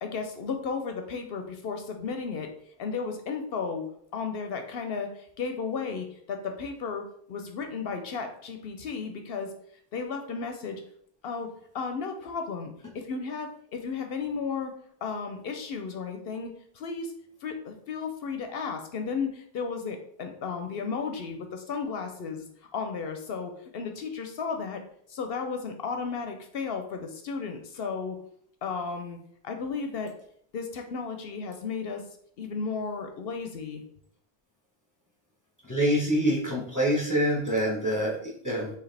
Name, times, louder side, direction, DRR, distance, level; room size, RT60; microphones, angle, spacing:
voice 1, 0.0-2.5 2.8-9.5 9.9-10.8 11.2-14.7 15.0-17.1 17.4-22.5 22.7-24.8 25.1-28.2 28.6-29.2 29.4-30.1 30.5-32.0 32.4-33.8, left 5 dB, 70° left, 5 dB, 0.8 m, -34 dB
voice 2, 35.7-38.7, right 1 dB, 20° left, -3 dB, 1.0 m, -26 dB
4.7 x 3.2 x 3.3 m, 0.66 s
omnidirectional pair, 1.1 m